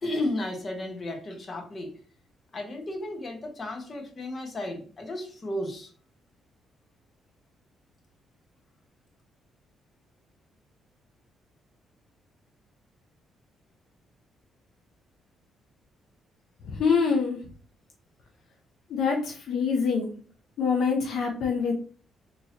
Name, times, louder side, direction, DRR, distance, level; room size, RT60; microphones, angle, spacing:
voice 1, 0.0-1.9 2.5-5.9, left 1 dB, 35° left, 2 dB, 1.1 m, -33 dB
voice 2, 16.7-17.4 18.9-20.1 20.6-21.7, left 5 dB, 70° left, 1 dB, 0.7 m, -25 dB
3.7 x 2.9 x 2.9 m, 0.41 s
cardioid pair, 90°, 0 cm